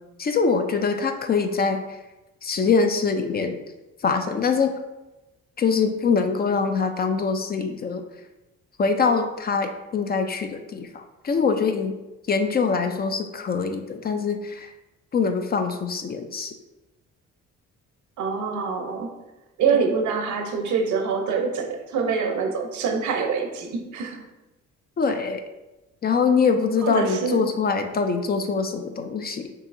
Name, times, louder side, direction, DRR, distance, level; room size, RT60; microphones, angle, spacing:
voice 1, 0.2-2.0 2.4-3.6 4.0-4.7 5.6-8.0 8.8-12.0 12.3-14.7 15.1-16.5 25.0-25.4 26.0-29.5, left 5 dB, 35° left, 7 dB, 0.4 m, -23 dB
voice 2, 18.2-19.1 19.6-24.2 26.8-27.4, right 5 dB, 75° right, 4 dB, 0.8 m, -25 dB
5.5 x 2.8 x 2.6 m, 1.0 s
cardioid pair, 90°, 30 cm